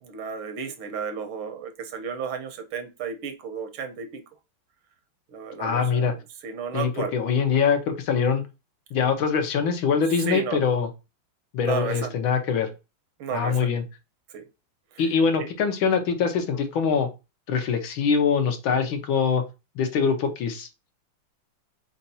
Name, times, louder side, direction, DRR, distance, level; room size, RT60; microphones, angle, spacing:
voice 1, 0.0-4.2 5.3-7.1 10.3-10.7 11.6-12.2 13.2-13.8 14.3-14.4 14.9-15.0 15.4-15.5, right 6 dB, 80° right, 8 dB, 1.7 m, -33 dB
voice 2, 5.6-6.1 6.7-8.4 8.9-10.9 11.5-12.7 13.3-13.8 15.0-17.1 17.5-19.4 19.8-20.7, left 6 dB, 70° left, 6 dB, 1.7 m, -23 dB
4.5 x 4.4 x 2.7 m, 0.27 s
omnidirectional pair, 2.3 m